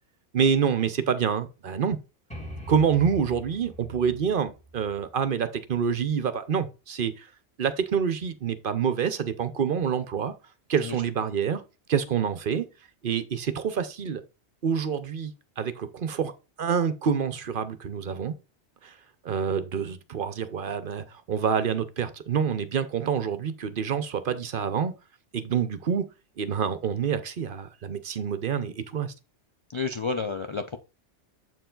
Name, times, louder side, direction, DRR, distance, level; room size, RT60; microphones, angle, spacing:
voice 1, 0.3-2.0 2.7-7.3 7.6-10.3 10.7-11.6 11.9-12.7 13.0-14.2 14.6-16.3 16.6-18.3 18.8-18.9 19.2-24.9 25.3-26.0 26.4-29.1, right 7 dB, 55° right, 0.8 m, -27 dB
sound 1, 2.3-6.0, equal, 5° left, 2.0 m, -43 dB
voice 2, 29.7-30.8, left 4 dB, 50° left, 0.3 m, -30 dB
7.6 x 4.6 x 3.8 m
omnidirectional pair, 1.2 m